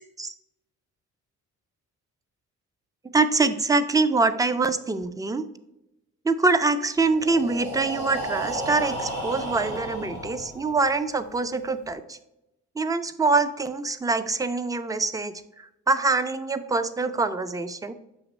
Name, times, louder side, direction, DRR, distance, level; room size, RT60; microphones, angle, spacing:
voice 1, 3.1-5.5 6.2-12.2 12.8-17.9, right 3 dB, 10° right, 11 dB, 0.4 m, -24 dB
Breathing, 7.1-10.9, right 1 dB, 85° right, 1.8 m, -33 dB
7.0 x 3.0 x 5.1 m, 0.90 s
cardioid pair, 90°, 30 cm